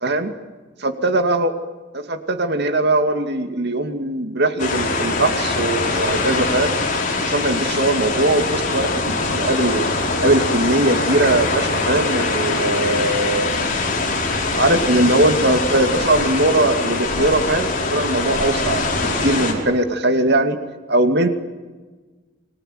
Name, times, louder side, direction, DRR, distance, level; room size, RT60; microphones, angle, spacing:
voice 1, 0.0-0.3 0.8-1.5 1.9-6.8 7.2-9.9 10.2-13.5 14.5-20.6 20.9-21.3, right 2 dB, 55° right, 7 dB, 2.4 m, -20 dB
sound 1, 4.6-19.5, left 3 dB, 45° left, 5.3 m, -22 dB
28.0 x 22.0 x 9.4 m, 1.3 s
head